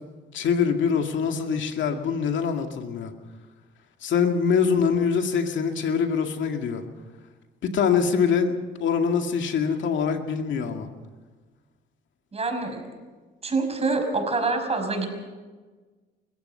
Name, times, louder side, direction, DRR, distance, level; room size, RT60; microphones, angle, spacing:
voice 1, 0.3-3.1 4.0-6.8 7.6-10.9, left 6 dB, 70° left, 5 dB, 2.2 m, -24 dB
voice 2, 12.3-12.8 13.4-15.1, right 3 dB, 30° right, 5 dB, 5.7 m, -26 dB
29.5 x 15.5 x 5.7 m, 1.3 s
cardioid pair, 90°, 20 cm